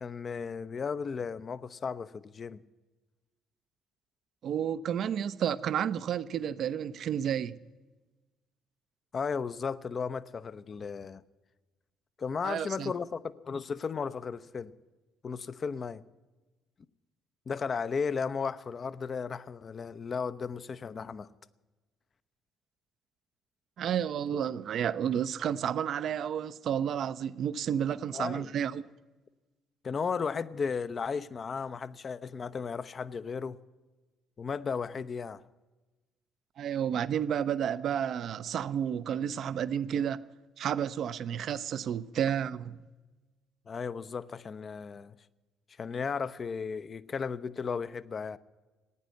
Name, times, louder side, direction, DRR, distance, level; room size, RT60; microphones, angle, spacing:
voice 1, 0.0-2.6 9.1-11.2 12.2-14.7 15.2-16.0 17.5-21.3 28.1-28.5 29.8-33.6 34.4-35.4 43.7-45.1 45.8-48.4, left 5 dB, 40° left, 0.6 m, -35 dB
voice 2, 4.4-7.5 12.4-12.9 23.8-28.8 36.6-40.2 40.6-42.8, right 9 dB, 50° right, 0.5 m, -31 dB
15.0 x 9.9 x 9.4 m
figure-of-eight pair, 45°, 0 cm